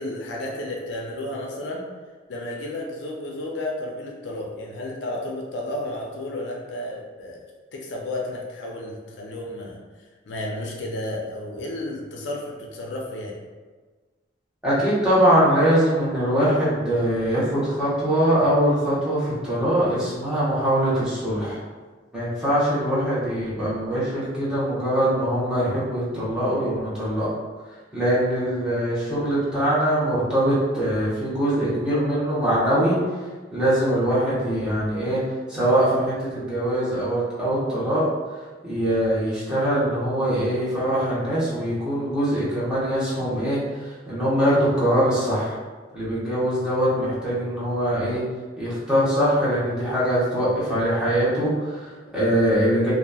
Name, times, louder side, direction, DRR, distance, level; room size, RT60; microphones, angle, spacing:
voice 1, 0.0-1.8 2.3-7.4 7.7-9.8 10.3-13.4, left 1 dB, 75° left, -1 dB, 0.4 m, -32 dB
voice 2, 14.6-21.6 22.1-27.3 27.9-33.0 33.5-35.2 35.5-38.1 38.6-45.6 45.9-48.2 48.6-52.9, right 1 dB, 5° right, -11 dB, 0.9 m, -22 dB
2.8 x 2.3 x 2.3 m, 1.4 s
head